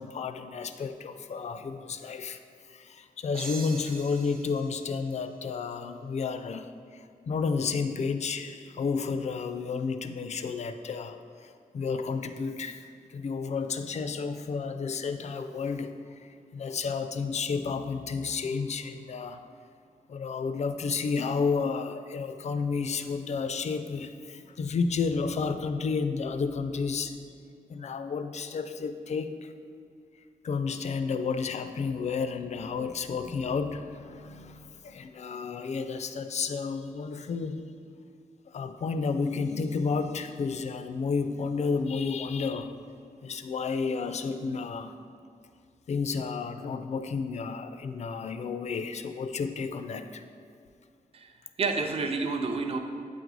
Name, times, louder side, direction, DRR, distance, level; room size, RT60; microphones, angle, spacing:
voice 1, 0.0-2.4 2.6-19.4 20.1-27.2 27.7-29.5 30.4-37.6 38.5-42.7 43.2-44.9 45.9-50.2, left 5 dB, 50° left, 9 dB, 0.4 m, -31 dB
sound 1, 3.3-6.0, right 3 dB, 90° right, 0.9 m, -44 dB
voice 2, 51.1-52.8, right 4 dB, 40° right, 5 dB, 0.5 m, -30 dB
8.1 x 3.9 x 4.7 m, 2.3 s
wide cardioid pair, 160°, 15 cm